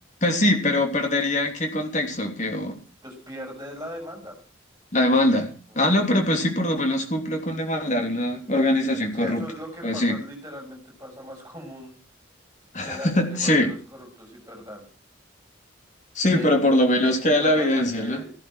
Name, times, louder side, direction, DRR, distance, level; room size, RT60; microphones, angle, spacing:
voice 1, 0.2-2.8 4.9-9.4 9.8-10.1 12.7-13.7 16.1-18.2, left 1 dB, 35° left, 4 dB, 3.2 m, -22 dB
voice 2, 3.0-4.4 5.7-5.8 9.1-11.9 12.8-14.8 16.3-16.5 16.9-18.3, equal, 15° right, 2 dB, 6.7 m, -39 dB
15.0 x 10.5 x 6.3 m, 0.36 s
head